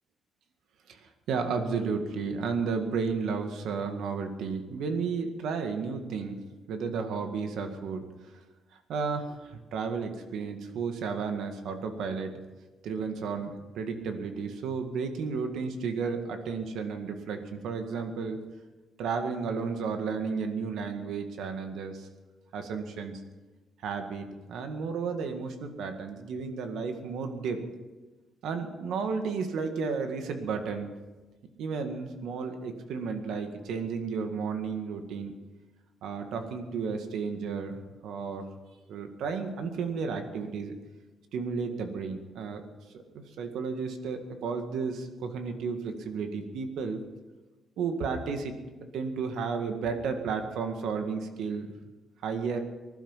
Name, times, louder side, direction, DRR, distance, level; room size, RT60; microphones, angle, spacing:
voice 1, 0.9-6.4 6.7-8.1 8.9-12.4 12.8-18.4 19.0-22.1 22.5-23.2 23.8-27.6 28.4-30.9 31.6-35.4 36.0-38.5 38.9-40.7 41.3-42.6 42.9-47.0 47.8-51.7 52.2-52.6, right 5 dB, 75° right, 6 dB, 1.9 m, -33 dB
20.0 x 12.0 x 5.7 m, 1.2 s
cardioid pair, 170°, 0 cm